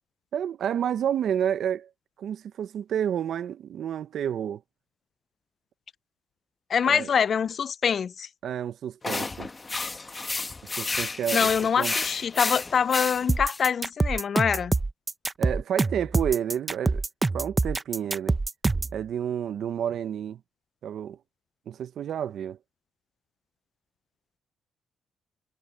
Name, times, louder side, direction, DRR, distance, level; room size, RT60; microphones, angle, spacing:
voice 1, 0.3-1.9 2.2-4.6 6.9-7.1 8.4-9.5 10.8-11.9 15.4-17.0 17.3-18.4 18.9-20.4 20.8-21.2 21.7-22.6, right 9 dB, 65° right, 0.8 m, -30 dB
voice 2, 6.7-8.3 11.3-14.7, left 7 dB, 50° left, 0.3 m, -25 dB
sound 1, 9.0-13.6, left 3 dB, 25° left, 1.1 m, -31 dB
sound 2, 13.3-19.0, right 3 dB, 20° right, 0.7 m, -25 dB
cardioid pair, 90°, 0 cm